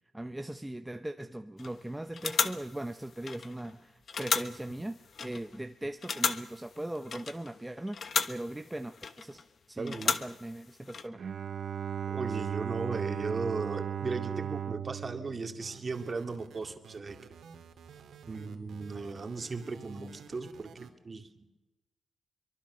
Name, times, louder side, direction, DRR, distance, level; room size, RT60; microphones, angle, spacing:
voice 1, 0.1-8.0 8.3-11.2, right 1 dB, 10° right, 7 dB, 0.8 m, -39 dB
sound 1, 1.6-1.8 2.1-3.7 4.1-5.6 6.0-7.6 7.9-9.4 9.9-11.1, left 5 dB, 50° left, 1.2 m, -35 dB
voice 2, 9.8-10.2 12.1-17.3 18.3-21.6, right 4 dB, 35° right, 5 dB, 2.3 m, -37 dB
Bowed string instrument, 11.2-16.4, right 8 dB, 55° right, 0.9 m, -36 dB
sound 2, 15.6-20.9, right 7 dB, 80° right, 2.4 m, -52 dB
24.0 x 23.5 x 6.3 m, 1.0 s
wide cardioid pair, 125°, 0 cm